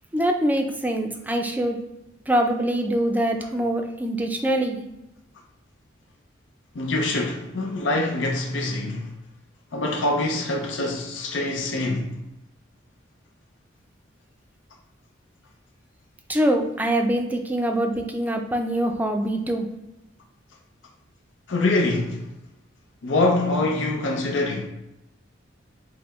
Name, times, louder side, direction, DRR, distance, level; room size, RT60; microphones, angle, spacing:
voice 1, 0.1-1.8 2.3-4.8 16.3-19.7, right 1 dB, 10° right, 0.4 m, -24 dB
voice 2, 6.7-9.1 9.7-12.1 21.5-22.2 23.0-24.7, left 2 dB, 90° left, 0.7 m, -24 dB
4.7 x 2.1 x 3.5 m
head